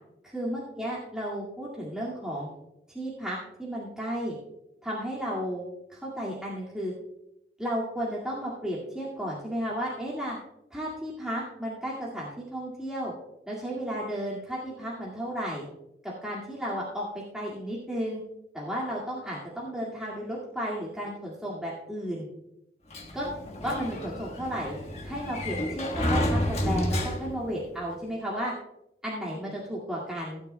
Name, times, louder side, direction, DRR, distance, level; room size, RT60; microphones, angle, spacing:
voice 1, 0.2-2.5 2.9-4.4 4.8-6.9 7.6-10.4 10.7-13.1 13.5-15.6 16.0-18.2 18.5-22.3 23.1-23.3 23.6-24.7 25.0-28.5 29.0-30.4, equal, 5° right, -6 dB, 2.0 m, -33 dB
Sliding door, 22.9-27.6, equal, 40° left, 1.4 m, -30 dB
16.5 x 9.8 x 2.2 m, 0.84 s
head